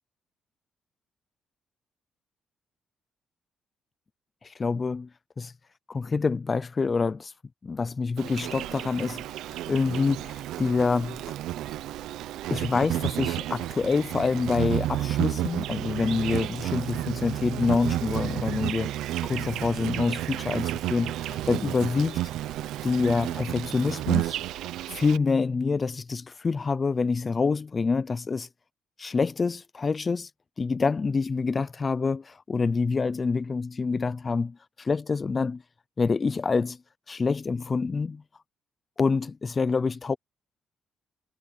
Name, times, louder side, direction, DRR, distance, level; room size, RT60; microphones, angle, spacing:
voice 1, 4.4-5.1 5.4-5.5 5.9-7.3 7.6-9.2 9.7-11.2 12.5-18.9 19.2-22.2 22.8-24.4 24.9-28.5 29.0-30.3 30.6-35.6 36.0-36.8 37.1-38.2 39.0-40.2, left 4 dB, 35° left, 0.6 m, -26 dB
Insect, 8.2-25.2, right 14 dB, 90° right, 0.9 m, -31 dB
cardioid pair, 90°, 0 cm